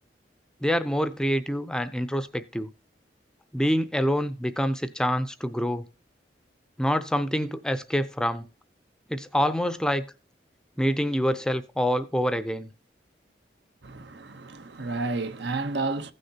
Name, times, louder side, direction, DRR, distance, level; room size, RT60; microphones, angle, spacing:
voice 1, 0.6-2.7 3.5-5.8 6.8-8.4 9.1-10.0 10.8-12.7, equal, 5° left, 0.4 m, -26 dB
voice 2, 13.8-16.1, right 3 dB, 75° right, 0.8 m, -31 dB
15.5 x 6.5 x 2.8 m
head